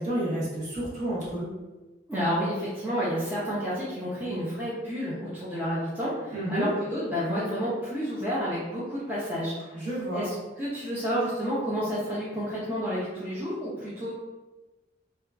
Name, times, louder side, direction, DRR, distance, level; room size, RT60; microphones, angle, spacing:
voice 1, 0.0-1.5 6.3-6.7 9.7-10.3, right 1 dB, 40° right, -7 dB, 0.9 m, -30 dB
voice 2, 2.1-9.9 10.1-14.1, equal, 10° right, -10 dB, 0.5 m, -30 dB
2.7 x 2.3 x 2.3 m, 1.2 s
head